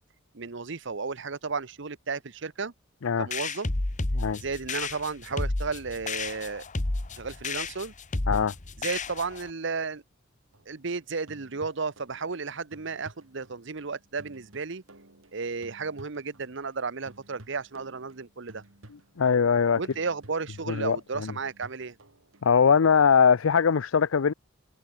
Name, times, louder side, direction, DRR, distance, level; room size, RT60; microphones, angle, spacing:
voice 1, 0.3-2.7 3.2-3.7 4.4-6.6 7.2-7.9 8.8-10.0 10.7-14.8 15.3-18.6 19.8-22.0, right 4 dB, 65° right, 1.0 m, -33 dB
sound 1, 3.3-9.5, left 2 dB, 40° left, 1.3 m, -31 dB
sound 2, 10.5-16.8 17.1-22.5, right 1 dB, 85° right, 3.3 m, -54 dB
voice 2, 19.2-19.8 20.7-21.3 22.4-24.3, left 6 dB, 85° left, 0.5 m, -21 dB
head